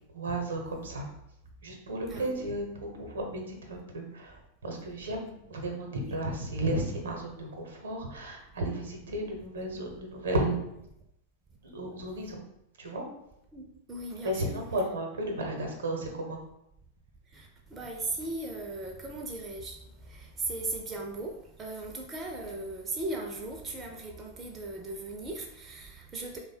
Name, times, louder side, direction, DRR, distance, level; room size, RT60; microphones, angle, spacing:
voice 1, 0.1-1.1 1.6-10.6 11.6-12.4 12.8-13.0 14.2-16.4, right 1 dB, 65° right, 2 dB, 0.8 m, -34 dB
voice 2, 2.1-2.5 13.5-14.5 17.3-19.8 20.1-21.3 21.6-26.4, right 2 dB, 20° right, 1 dB, 0.5 m, -37 dB
3.2 x 2.2 x 4.2 m, 0.81 s
figure-of-eight pair, 90°, 0 cm